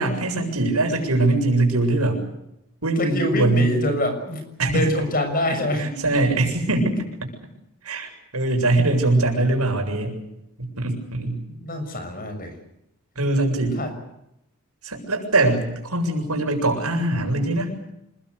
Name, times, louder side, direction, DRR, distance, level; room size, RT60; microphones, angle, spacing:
voice 1, 0.0-2.2 2.8-3.7 4.6-4.8 5.8-7.0 7.8-10.1 10.6-11.4 13.2-13.8 14.8-17.9, right 2 dB, 85° right, 4 dB, 7.4 m, -22 dB
voice 2, 3.0-4.4 4.7-5.9 11.5-12.5 13.8-13.9, left 1 dB, 40° left, 8 dB, 6.4 m, -25 dB
27.0 x 21.5 x 8.3 m, 0.84 s
head